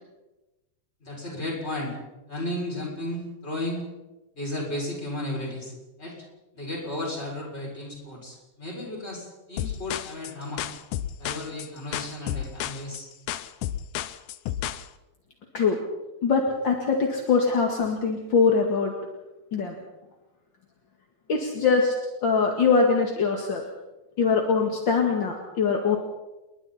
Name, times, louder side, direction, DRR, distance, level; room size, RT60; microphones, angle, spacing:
voice 1, 1.0-2.0 2.3-3.8 4.3-6.2 6.5-10.7 11.2-13.1, left 1 dB, 15° left, -2 dB, 6.8 m, -34 dB
sound 1, 9.6-14.9, left 11 dB, 75° left, 1.8 m, -32 dB
voice 2, 16.2-18.9 19.5-19.7 21.3-22.0 22.2-23.6 24.2-26.0, left 5 dB, 40° left, 1 dB, 2.0 m, -22 dB
29.0 x 22.5 x 4.3 m, 1.0 s
omnidirectional pair, 4.4 m